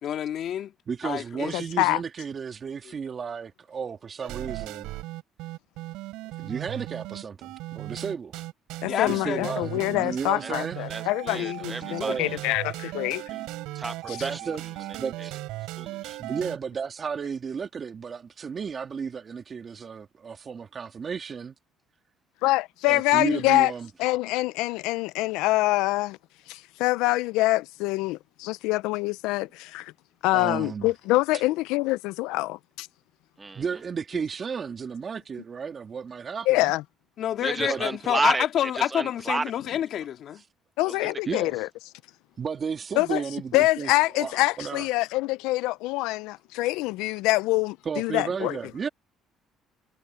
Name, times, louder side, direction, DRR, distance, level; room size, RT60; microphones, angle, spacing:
voice 1, 0.0-0.7 1.0-1.5 8.9-9.5 37.2-40.4, left 10 dB, 60° left, 2.6 m, -28 dB
voice 2, 0.9-4.9 6.4-8.4 9.1-10.8 12.0-12.3 14.1-15.4 16.2-21.5 22.9-23.9 30.3-30.9 33.5-36.7 37.6-37.8 40.4-40.5 41.3-41.6 42.4-43.9 44.2-44.9 47.8-48.9, right 6 dB, 35° right, 2.4 m, -33 dB
voice 3, 1.5-2.0 8.8-13.2 22.4-23.7 24.0-26.2 26.5-29.9 30.2-32.9 36.5-36.8 40.8-41.7 43.0-43.2 43.5-48.6, left 19 dB, 90° left, 0.4 m, -25 dB
sound 1, 4.2-16.6, right 19 dB, 85° right, 5.6 m, -37 dB
voice 4, 10.9-12.4 13.3-13.4 13.8-14.5 14.9-15.3 15.8-16.2 33.4-33.6 37.4-39.8 40.9-41.4, right 3 dB, 20° right, 1.2 m, -32 dB
cardioid pair, 110°, 0 cm